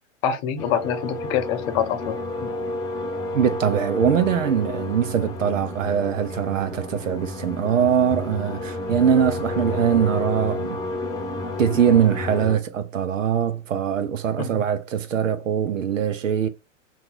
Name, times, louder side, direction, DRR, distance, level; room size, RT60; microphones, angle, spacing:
voice 1, 0.2-2.5 14.4-14.5, left 8 dB, 45° left, 0.8 m, -26 dB
sound 1, 0.6-12.6, left 2 dB, 10° left, 0.9 m, -31 dB
voice 2, 3.3-10.8 11.6-16.5, right 8 dB, 85° right, 0.8 m, -22 dB
2.8 x 2.6 x 3.7 m
hypercardioid pair, 110°, 38 cm